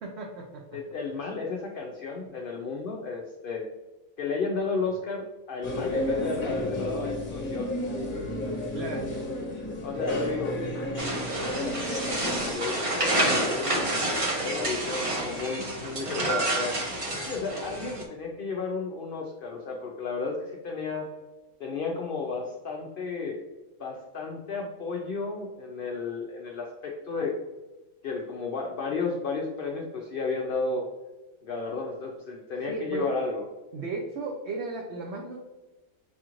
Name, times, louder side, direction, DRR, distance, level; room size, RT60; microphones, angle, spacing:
voice 1, 0.0-0.6 8.7-9.1 32.7-33.1 33.7-35.4, right 3 dB, 65° right, 0 dB, 0.7 m, -35 dB
voice 2, 0.7-3.6 4.2-7.7 9.8-10.6 11.4-13.9 14.4-16.8 17.2-21.1 21.6-23.4 23.8-27.3 28.0-30.9 31.4-33.4, left 4 dB, 65° left, 0 dB, 0.5 m, -33 dB
sound 1, 5.6-12.5, left 1 dB, 40° left, 0.9 m, -32 dB
sound 2, 11.0-18.0, right 1 dB, 35° right, 0.5 m, -29 dB
6.2 x 2.5 x 2.9 m, 1.2 s
omnidirectional pair, 1.5 m